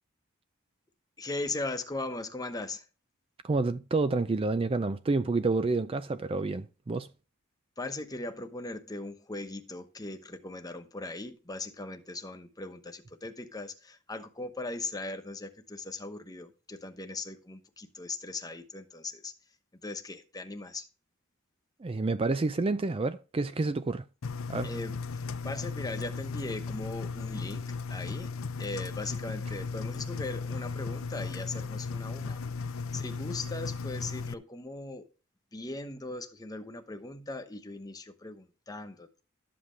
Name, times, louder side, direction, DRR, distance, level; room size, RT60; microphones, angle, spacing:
voice 1, 1.2-2.8 7.8-19.3 19.8-20.9 24.6-28.3 28.6-32.4 32.9-35.1 35.5-39.2, left 2 dB, 20° left, 1.0 m, -39 dB
voice 2, 3.4-7.1 21.8-24.0 24.5-24.7, right 3 dB, 25° right, 0.4 m, -29 dB
Engine, 24.2-34.3, left 4 dB, 75° left, 0.6 m, -36 dB
12.5 x 7.6 x 3.2 m
head